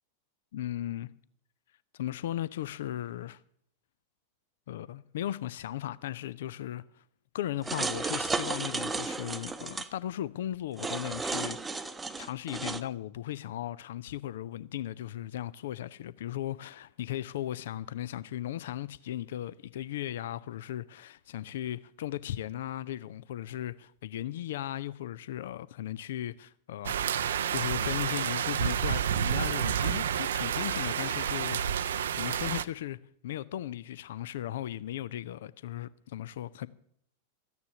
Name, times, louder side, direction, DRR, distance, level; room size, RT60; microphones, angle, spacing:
voice 1, 0.5-1.1 1.9-3.4 4.7-7.0 7.3-11.7 12.2-33.0 33.2-36.7, left 12 dB, 60° left, 0.4 m, -37 dB
sound 1, 7.6-9.9 10.8-12.8, right 3 dB, 10° right, 0.8 m, -33 dB
sound 2, 26.8-32.6, right 8 dB, 65° right, 0.5 m, -29 dB
13.5 x 9.5 x 6.8 m
figure-of-eight pair, 90°, 0 cm